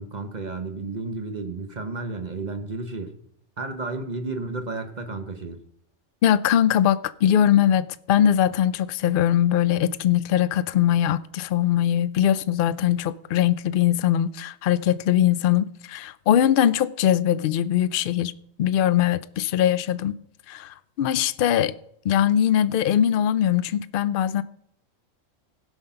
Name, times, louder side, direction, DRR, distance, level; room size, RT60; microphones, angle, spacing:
voice 1, 0.0-3.1 3.6-5.6, right 3 dB, 35° right, 1.0 m, -32 dB
voice 2, 6.2-18.3 18.6-20.1 20.5-21.7 22.0-24.4, left 10 dB, 60° left, 0.6 m, -21 dB
16.5 x 5.9 x 5.6 m
omnidirectional pair, 1.3 m